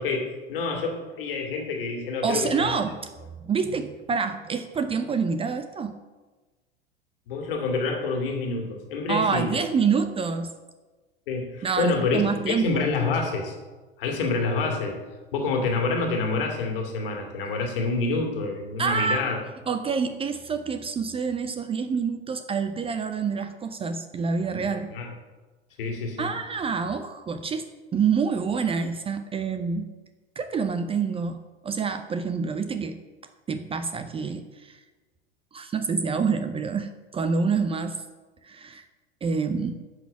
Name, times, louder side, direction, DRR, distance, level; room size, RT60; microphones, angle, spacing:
voice 1, 0.0-2.8 7.3-9.6 11.3-13.5 14.0-15.0 15.3-19.4 24.9-25.1 25.8-26.3, left 3 dB, 60° left, 2 dB, 2.4 m, -27 dB
voice 2, 2.2-3.0 3.4-6.0 9.1-10.5 11.6-12.8 18.8-19.2 19.7-24.9 26.2-27.6 27.9-29.9 30.4-31.4 31.6-33.0 33.5-34.8 35.5-38.0 38.4-38.8 39.2-39.8, right 5 dB, 20° right, 10 dB, 0.6 m, -27 dB
11.0 x 6.2 x 6.7 m, 1.2 s
figure-of-eight pair, 80°, 31 cm